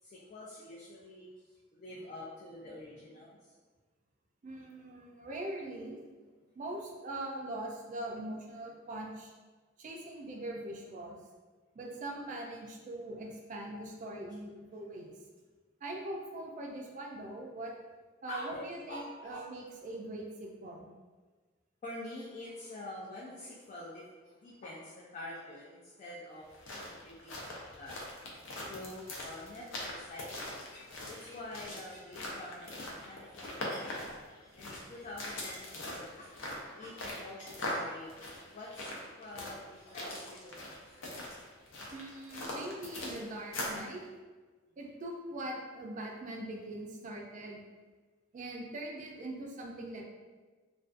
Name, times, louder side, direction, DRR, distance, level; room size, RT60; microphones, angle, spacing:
voice 1, 0.0-3.5 6.2-6.3 11.9-12.0 18.3-19.5 21.8-28.0 28.7-34.0 34.4-38.1 38.5-41.0, left 1 dB, 40° left, -4 dB, 0.3 m, -47 dB
voice 2, 4.4-6.0 6.6-9.3 9.8-11.2 11.7-15.1 15.8-17.7 18.2-20.9 41.9-44.0 44.8-47.6 48.3-50.0, right 1 dB, 40° right, 0 dB, 0.3 m, -42 dB
sound 1, 26.4-43.9, left 1 dB, 85° left, 0.5 m, -42 dB
2.4 x 2.2 x 2.4 m, 1.3 s
head